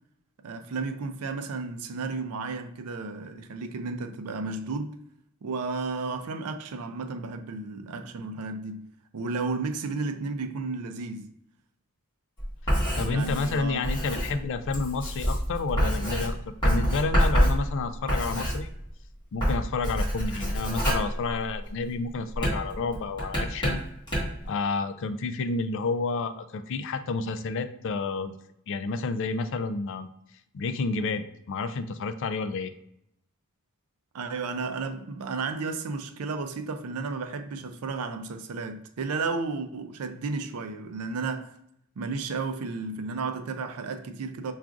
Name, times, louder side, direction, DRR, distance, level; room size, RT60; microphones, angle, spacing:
voice 1, 0.4-5.0 5.4-8.9 9.1-11.3 13.1-13.8 34.1-41.6 42.0-44.5, right 4 dB, 80° right, 0.4 m, -33 dB
Writing, 12.4-19.0 19.3-21.8 22.3-24.5, equal, 20° left, 1.5 m, -27 dB
voice 2, 13.0-18.7 19.3-23.8 24.4-28.3 28.7-30.1 30.5-32.7, left 4 dB, 55° left, 0.3 m, -30 dB
5.8 x 2.4 x 2.4 m
head